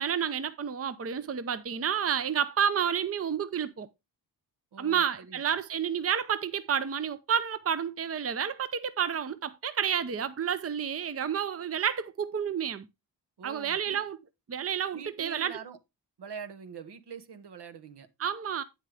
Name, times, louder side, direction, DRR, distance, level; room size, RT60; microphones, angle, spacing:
voice 1, 0.0-3.9 4.8-12.9 13.4-14.2 14.5-15.5 18.2-18.6, right 8 dB, 35° right, 0.7 m, -30 dB
voice 2, 4.7-5.4 13.4-14.0 14.9-15.8 16.2-18.1, right 6 dB, 70° right, 1.0 m, -44 dB
8.5 x 7.3 x 3.4 m
cardioid pair, 55°, 43 cm